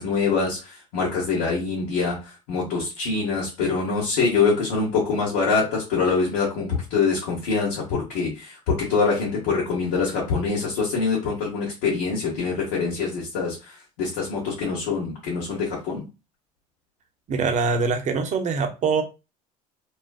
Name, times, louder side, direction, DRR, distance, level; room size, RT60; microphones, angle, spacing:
voice 1, 0.0-16.0, left 4 dB, 70° left, 0.9 m, -24 dB
voice 2, 17.3-19.0, right 4 dB, 40° right, 0.6 m, -23 dB
2.4 x 2.3 x 2.2 m
hypercardioid pair, 65°, 19 cm